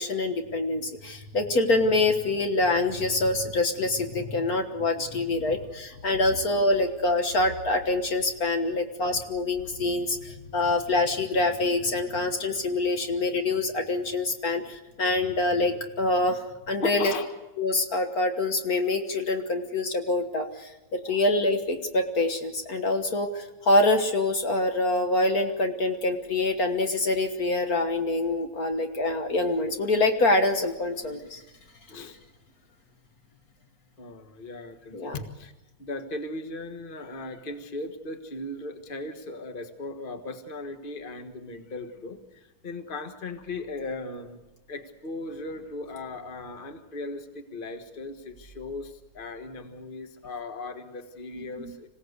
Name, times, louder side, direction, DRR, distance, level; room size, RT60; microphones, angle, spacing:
voice 1, 0.0-17.1 17.6-31.4 34.9-35.2 51.6-51.7, left 2 dB, 55° left, 6 dB, 1.8 m, -25 dB
voice 2, 16.8-17.3 21.1-21.2 31.9-32.2 34.0-35.5 35.8-44.4 44.7-51.9, left 2 dB, 30° left, 8 dB, 1.6 m, -37 dB
26.5 x 17.0 x 8.1 m, 1.0 s
omnidirectional pair, 1.9 m